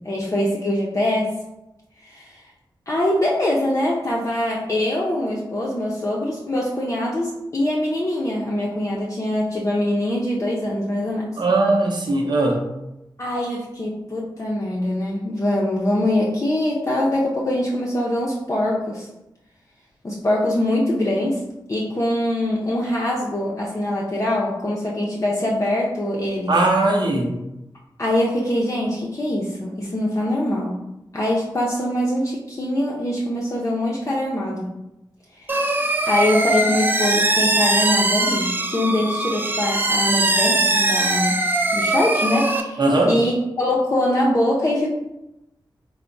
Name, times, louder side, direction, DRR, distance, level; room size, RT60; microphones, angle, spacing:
voice 1, 0.0-1.3 2.0-2.4 2.9-11.4 13.2-19.1 20.0-21.4 21.7-26.5 28.0-30.8 31.1-34.7 35.4-35.6 36.1-41.4 41.7-42.8 43.1-44.9, left 1 dB, 35° left, -4 dB, 0.5 m, -23 dB
voice 2, 11.4-12.6 26.5-27.4 42.8-43.1, right 2 dB, 65° right, 1 dB, 0.7 m, -19 dB
sound 1, 35.5-42.6, right 2 dB, 25° right, 0.4 m, -21 dB
3.4 x 2.0 x 3.8 m, 0.93 s
wide cardioid pair, 80°, 8 cm